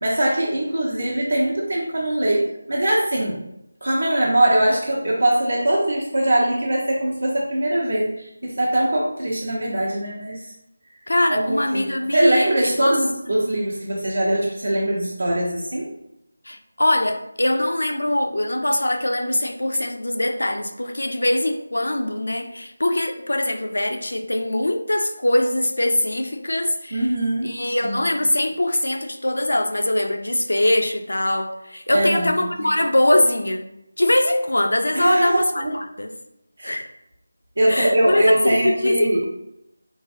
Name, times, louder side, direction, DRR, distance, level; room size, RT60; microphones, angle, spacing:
voice 1, 0.0-3.4 3.8-10.4 11.3-15.9 26.9-28.0 31.9-32.7 34.9-35.7 36.6-36.8 37.6-39.2, right 1 dB, 80° right, -5 dB, 1.0 m, -21 dB
voice 2, 11.1-13.0 16.5-27.1 27.4-33.6 34.0-36.1 36.6-36.9 37.7-39.2, left 1 dB, 90° left, 6 dB, 0.4 m, -22 dB
3.8 x 2.3 x 2.7 m, 0.81 s
figure-of-eight pair, 170°, 0 cm